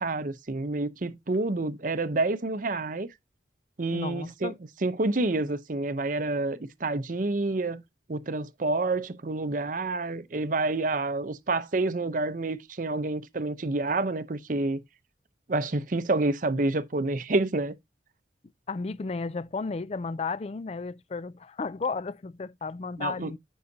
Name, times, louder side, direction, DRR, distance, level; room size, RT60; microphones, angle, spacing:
voice 1, 0.0-3.1 3.8-4.5 4.8-7.8 8.1-14.8 15.5-17.7 23.0-23.3, right 2 dB, 45° right, 0.6 m, -28 dB
voice 2, 3.9-4.6 18.7-23.4, left 4 dB, 35° left, 0.3 m, -33 dB
9.5 x 5.6 x 2.6 m
head